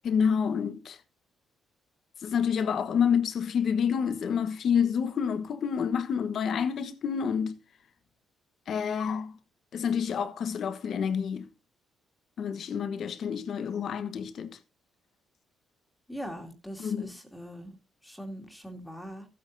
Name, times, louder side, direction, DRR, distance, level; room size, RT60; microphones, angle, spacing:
voice 1, 0.0-1.0 2.2-7.6 8.7-9.4 9.7-11.5 12.4-14.6 16.8-17.1, left 7 dB, 60° left, 1.1 m, -28 dB
voice 2, 16.1-17.8 18.0-19.3, equal, 5° left, 2.4 m, -41 dB
15.5 x 8.6 x 2.7 m
cardioid pair, 90°, 0 cm